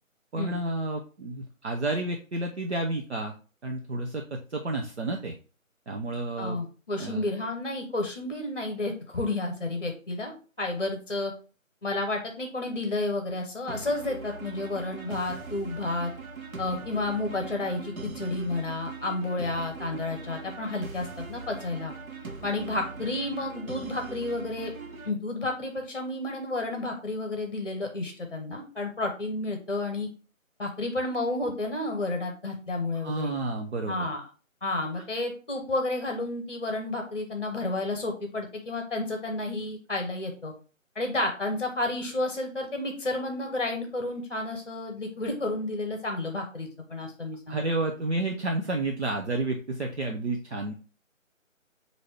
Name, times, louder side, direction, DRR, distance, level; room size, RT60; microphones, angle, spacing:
voice 1, 0.3-3.3 3.6-5.4 5.9-6.6 7.0-7.2 32.9-34.1 34.9-35.0 47.5-50.7, right 2 dB, 55° right, 2 dB, 0.6 m, -30 dB
voice 2, 6.4-11.3 11.8-16.1 16.6-21.9 22.4-24.7 25.0-30.1 30.6-33.3 33.9-34.2 34.6-40.5 40.9-47.6, left 2 dB, 40° left, 4 dB, 0.8 m, -31 dB
sound 1, 13.7-25.1, right 4 dB, 85° right, 1.0 m, -41 dB
5.8 x 2.7 x 3.2 m, 0.36 s
figure-of-eight pair, 165°, 41 cm